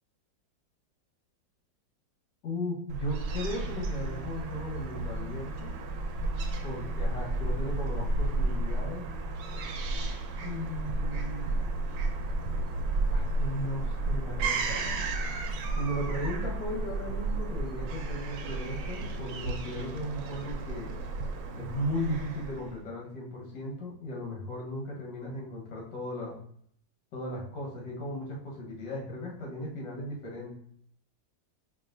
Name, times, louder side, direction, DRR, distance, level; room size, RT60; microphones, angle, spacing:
voice 1, 2.4-5.7 6.6-9.1 10.4-11.5 13.1-14.8 15.8-20.9 21.6-26.4 27.1-30.5, equal, 75° left, -2 dB, 1.8 m, -36 dB
Fowl / Gull seagull, 2.9-22.8, right 2 dB, 75° right, 1.2 m, -32 dB
4.7 x 2.7 x 2.5 m, 0.63 s
omnidirectional pair, 2.0 m